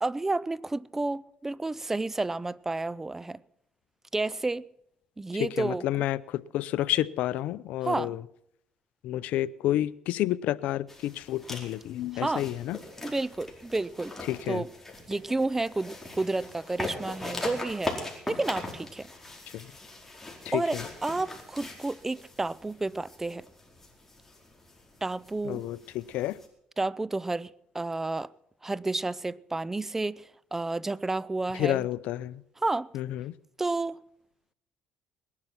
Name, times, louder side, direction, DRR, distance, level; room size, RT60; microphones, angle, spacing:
voice 1, 0.0-3.4 4.1-4.6 5.2-5.8 7.8-8.1 12.1-12.4 13.0-14.2 14.5-14.7 15.1-18.0 18.3-19.1 20.5-23.5 25.0-25.6 26.8-28.3 28.6-31.8 32.6-32.9 33.6-34.0, right 2 dB, 15° right, 0.5 m, -31 dB
voice 2, 5.4-8.2 9.0-12.8 14.3-14.6 19.5-19.7 20.4-20.9 25.4-26.4 31.5-32.4 32.9-33.3, left 13 dB, 75° left, 0.6 m, -30 dB
sound 1, 10.9-26.5, left 2 dB, 10° left, 4.5 m, -41 dB
20.0 x 11.0 x 5.9 m
supercardioid pair, 80°, 2 cm